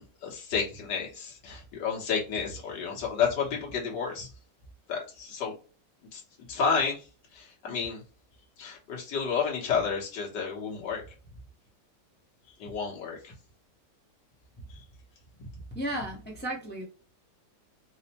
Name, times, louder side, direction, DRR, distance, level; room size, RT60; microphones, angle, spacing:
voice 1, 0.0-4.3 4.9-5.6 6.1-6.2 6.5-7.0 7.3-8.0 8.6-11.0 12.6-13.3 14.7-14.8, left 6 dB, 75° left, 1.7 m, -31 dB
voice 2, 15.7-16.8, right 1 dB, 15° left, 0.4 m, -34 dB
4.8 x 2.1 x 2.8 m
omnidirectional pair, 1.9 m